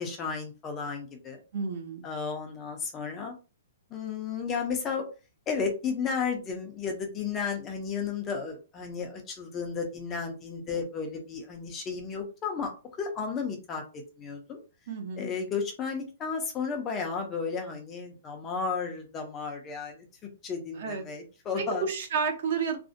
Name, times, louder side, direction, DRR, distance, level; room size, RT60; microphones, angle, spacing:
voice 1, 0.0-1.4 2.0-3.4 3.9-5.0 5.5-12.7 13.0-14.6 15.2-20.1 20.4-21.8, left 5 dB, 15° left, 3 dB, 0.4 m, -33 dB
voice 2, 1.5-2.0 14.9-15.3 20.7-21.0 21.6-22.8, right 5 dB, 45° right, 4 dB, 0.6 m, -31 dB
2.4 x 2.0 x 2.5 m, 0.33 s
hypercardioid pair, 170°, 0 cm